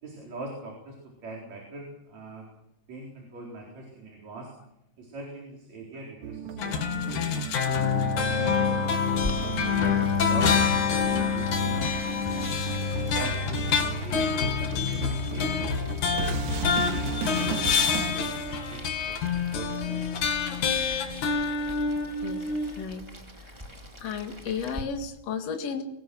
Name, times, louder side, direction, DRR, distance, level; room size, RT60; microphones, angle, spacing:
voice 1, 0.0-2.5 2.9-4.5 5.0-8.8 9.2-12.7 13.2-16.3 16.9-20.3, right 2 dB, 65° right, -1 dB, 5.5 m, -42 dB
sound 1, 6.2-18.1, right 7 dB, 80° right, 3.1 m, -36 dB
sound 2, 6.6-22.8, left 6 dB, 80° left, 3.5 m, -27 dB
Boiling, 9.1-24.8, equal, 10° right, 2.3 m, -44 dB
voice 2, 24.0-25.8, left 6 dB, 60° left, 4 dB, 3.0 m, -33 dB
24.5 x 21.0 x 6.3 m, 0.82 s
omnidirectional pair, 3.4 m